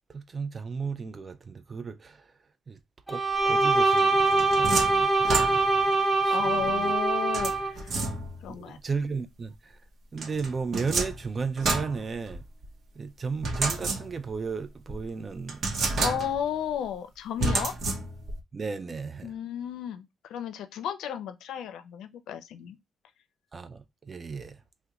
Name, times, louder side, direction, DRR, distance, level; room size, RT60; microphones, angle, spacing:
voice 1, 0.1-2.2 2.7-2.8 3.1-5.7 6.2-6.9 8.5-9.8 10.1-12.4 13.0-16.0 18.5-19.3 23.5-24.6, right 5 dB, 35° right, 0.4 m, -35 dB
Bowed string instrument, 3.1-7.7, right 3 dB, ahead, 0.9 m, -23 dB
sound 1, 4.0-5.9 7.3-8.5 10.2-12.7 13.4-14.4 14.9-15.0 15.5-16.6 17.4-18.4, right 3 dB, 60° right, 0.8 m, -30 dB
voice 2, 6.3-8.0 8.4-8.8 16.0-17.7 19.2-22.8, left 9 dB, 80° left, 0.4 m, -33 dB
2.8 x 2.1 x 3.5 m
cardioid pair, 90°, 0 cm